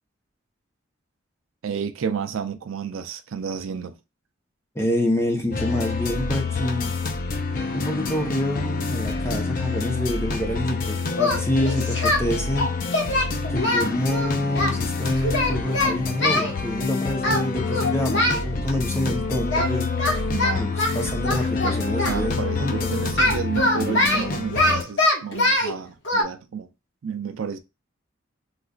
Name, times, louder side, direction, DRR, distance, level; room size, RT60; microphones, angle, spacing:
voice 1, 1.6-3.9 19.0-19.4 20.3-20.7 22.1-26.7 27.0-27.6, right 6 dB, 85° right, 0.4 m, -31 dB
voice 2, 4.8-6.9 7.7-12.7 13.5-20.2 20.6-22.9, left 1 dB, 15° left, 0.8 m, -27 dB
sound 1, 5.5-24.8, left 4 dB, 40° left, 0.4 m, -27 dB
Singing, 11.1-12.2 12.6-14.7 15.2-16.5 17.2-17.4 17.7-18.4 19.5-19.7 20.0-22.2 23.2-25.7 26.0-26.2, left 1 dB, 65° left, 1.1 m, -23 dB
3.9 x 2.3 x 2.3 m
head